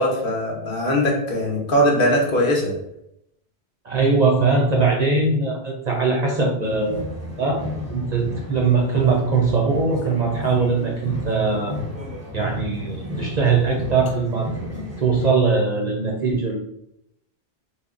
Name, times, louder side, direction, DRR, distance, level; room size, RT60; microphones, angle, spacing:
voice 1, 0.0-2.7, equal, 60° left, -1 dB, 1.0 m, -20 dB
voice 2, 3.8-7.0 7.4-7.6 7.9-11.7 12.3-14.5 14.7-16.6, right 4 dB, 50° right, -1 dB, 0.5 m, -21 dB
sound 1, 6.6-15.3, left 1 dB, 15° right, 0.7 m, -33 dB
3.5 x 2.0 x 3.6 m, 0.80 s
omnidirectional pair, 1.1 m